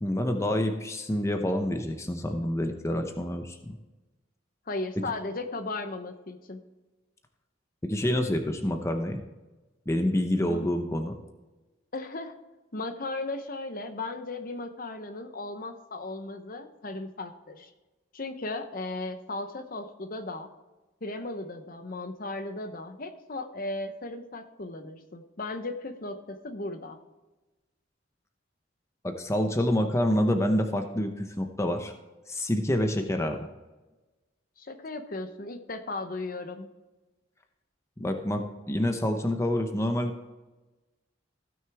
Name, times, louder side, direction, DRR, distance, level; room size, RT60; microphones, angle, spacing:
voice 1, 0.0-3.7 7.8-9.2 9.9-11.1 29.0-31.9 32.3-33.5 38.0-40.1, left 1 dB, 15° left, 5 dB, 0.7 m, -27 dB
voice 2, 4.7-6.6 10.5-10.7 11.9-12.3 12.7-17.7 18.1-20.5 21.0-27.0 34.6-36.7, left 2 dB, 45° left, 8 dB, 0.8 m, -36 dB
15.5 x 6.4 x 3.5 m, 1.1 s
head